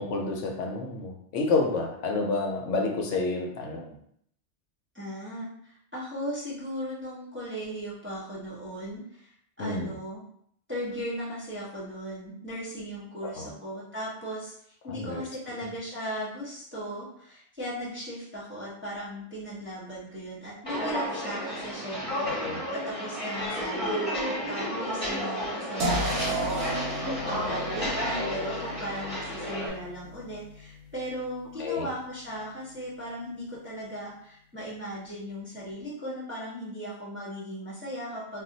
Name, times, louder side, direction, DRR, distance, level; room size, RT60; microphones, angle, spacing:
voice 1, 0.0-4.0 9.6-9.9 13.2-13.5 14.9-15.2 22.2-22.6 27.0-27.4 31.6-31.9, left 3 dB, 80° left, 1 dB, 0.9 m, -30 dB
voice 2, 4.9-9.3 9.6-10.2 10.7-14.5 14.8-38.4, equal, 15° right, -8 dB, 0.6 m, -37 dB
Walk footsteps, 20.6-29.7, equal, 10° left, 1.1 m, -32 dB
sound 1, 25.8-31.7, right 1 dB, 70° right, 0.9 m, -35 dB
2.5 x 2.1 x 3.8 m, 0.67 s
omnidirectional pair, 1.3 m